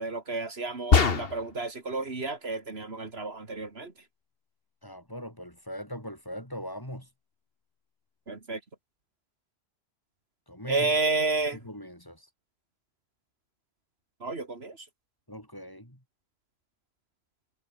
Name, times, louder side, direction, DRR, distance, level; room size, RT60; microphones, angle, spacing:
voice 1, 0.0-3.9 8.3-8.6 10.7-11.6 14.2-14.9, right 3 dB, 70° right, 2.8 m, -31 dB
sound 1, 0.9-1.6, left 5 dB, 60° left, 1.8 m, -22 dB
voice 2, 4.8-7.1 10.5-11.0 11.5-12.3 15.3-16.0, equal, 20° left, 6.6 m, -40 dB
omnidirectional pair, 1.1 m